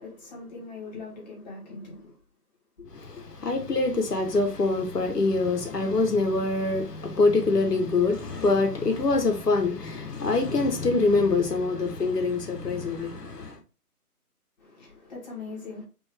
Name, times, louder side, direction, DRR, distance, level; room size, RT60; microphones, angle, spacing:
voice 1, 0.0-2.1 2.8-2.9 14.6-15.8, left 4 dB, 25° left, 1.7 m, -41 dB
voice 2, 2.9-13.6, left 3 dB, 85° left, 1.3 m, -25 dB
5.2 x 2.6 x 3.5 m
figure-of-eight pair, 155°, 47 cm